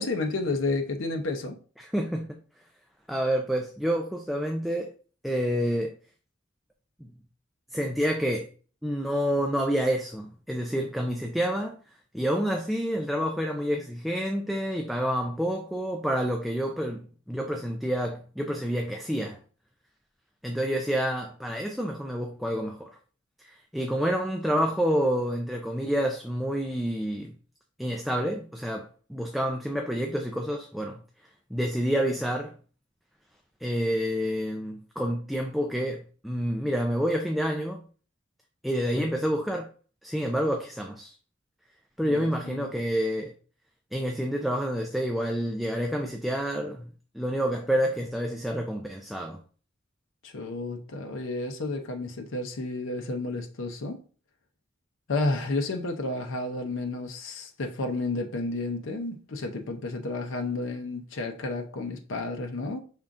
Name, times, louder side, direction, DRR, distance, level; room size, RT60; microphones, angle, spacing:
voice 1, 0.0-1.6 42.1-42.7 50.2-54.0 55.1-62.8, left 2 dB, 80° left, 0.7 m, -31 dB
voice 2, 1.8-2.4 3.1-4.9 5.2-5.9 7.0-7.1 7.7-8.5 8.8-11.8 12.1-19.4 20.4-23.0 23.4-27.3 27.8-31.0 31.5-32.5 33.6-37.8 38.6-39.7 40.0-41.1 42.0-43.3 43.9-46.9 47.1-49.4, equal, ahead, 0.4 m, -28 dB
5.4 x 3.5 x 2.5 m
head